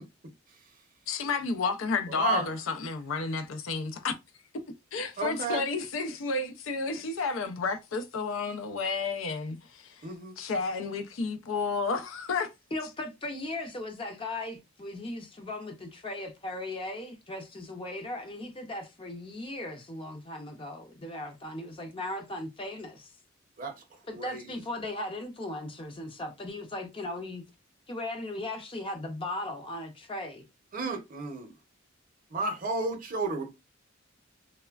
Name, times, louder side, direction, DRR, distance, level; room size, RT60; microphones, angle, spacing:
voice 1, 1.1-4.1 4.7-10.0 10.4-12.5, left 4 dB, 80° left, 0.5 m, -31 dB
voice 2, 2.1-2.5 5.2-5.6 10.0-10.3 23.6-23.7 24.1-24.6 30.7-31.5 32.3-33.5, right 3 dB, 45° right, 0.6 m, -32 dB
voice 3, 12.7-23.1 24.1-27.4 27.9-30.4, left 1 dB, 25° left, 0.5 m, -37 dB
3.1 x 2.1 x 2.3 m
head